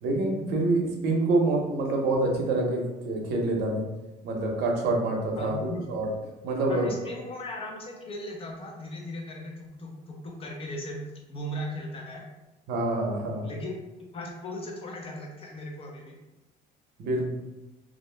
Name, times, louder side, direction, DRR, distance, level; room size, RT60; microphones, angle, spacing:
voice 1, 0.0-3.8 4.2-6.1 6.4-6.9 12.7-13.5 17.0-17.3, right 2 dB, 75° right, 1 dB, 0.7 m, -26 dB
voice 2, 5.4-5.8 6.7-11.0 11.3-12.2 13.4-13.8 14.1-16.2, left 1 dB, 35° left, 0 dB, 0.7 m, -37 dB
2.5 x 2.0 x 3.2 m, 1.0 s
cardioid pair, 110°, 17 cm